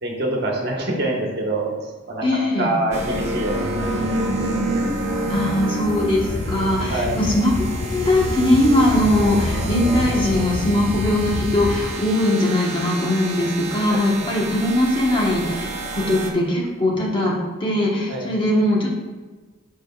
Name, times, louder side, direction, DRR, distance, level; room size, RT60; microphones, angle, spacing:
voice 1, 0.0-4.6 6.9-7.2 13.9-14.4 18.1-18.3, right 1 dB, 55° right, -1 dB, 1.3 m, -26 dB
voice 2, 2.2-2.7 5.3-7.5 7.8-17.3 17.6-18.9, left 1 dB, 25° left, -3 dB, 1.2 m, -20 dB
sound 1, 2.9-16.3, right 1 dB, 35° right, 0.8 m, -28 dB
sound 2, 6.2-11.8, left 3 dB, 65° left, 0.5 m, -29 dB
11.5 x 4.8 x 2.4 m, 1.3 s
head